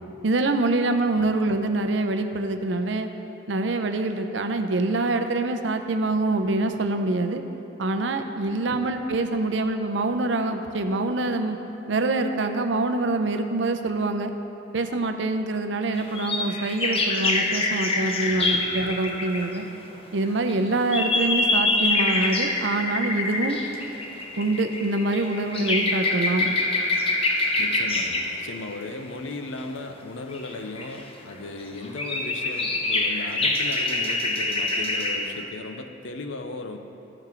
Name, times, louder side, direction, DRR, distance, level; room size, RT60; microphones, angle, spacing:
voice 1, 0.2-3.1 3.5-7.4 7.8-11.6 11.9-14.3 14.7-19.6 20.1-23.6 24.4-26.5, right 2 dB, 65° right, 7 dB, 0.6 m, -25 dB
sound 1, 15.9-19.6 20.2-28.4 29.6-29.7 30.3-31.3 31.6-35.4, left 2 dB, 30° left, 0.7 m, -25 dB
voice 2, 18.3-18.6 27.6-36.8, left 2 dB, 75° left, 7 dB, 0.7 m, -36 dB
13.5 x 6.0 x 4.4 m, 3.0 s
head